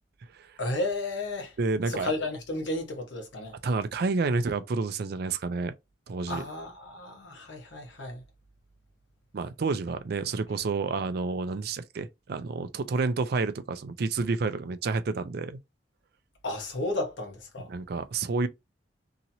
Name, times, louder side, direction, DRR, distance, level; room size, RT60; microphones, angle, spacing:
voice 1, 0.6-1.5 1.8-3.5 6.3-8.2 16.4-17.7, left 2 dB, 80° left, 1.1 m, -33 dB
voice 2, 1.6-2.1 3.6-5.7 6.1-6.4 9.3-15.6 17.7-18.5, right 4 dB, 60° right, 0.4 m, -29 dB
2.9 x 2.8 x 2.6 m
head